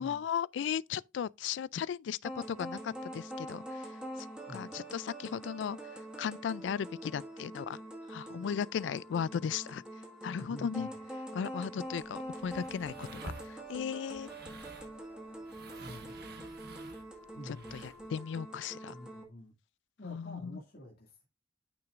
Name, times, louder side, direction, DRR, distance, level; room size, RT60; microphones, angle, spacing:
voice 1, 0.0-4.3 4.5-5.8 6.2-7.8 8.1-9.8 10.2-10.9 11.3-13.1 13.4-14.3 17.5-18.9 20.0-20.5, left 7 dB, 75° left, 0.3 m, -36 dB
sound 1, 2.2-19.2, right 1 dB, 5° right, 1.6 m, -45 dB
voice 2, 10.4-10.9 15.8-16.2 17.3-17.8 18.9-19.5 20.0-21.3, equal, 55° left, 2.0 m, -48 dB
sound 2, 11.8-18.1, right 2 dB, 55° right, 1.2 m, -51 dB
9.2 x 5.9 x 2.5 m
head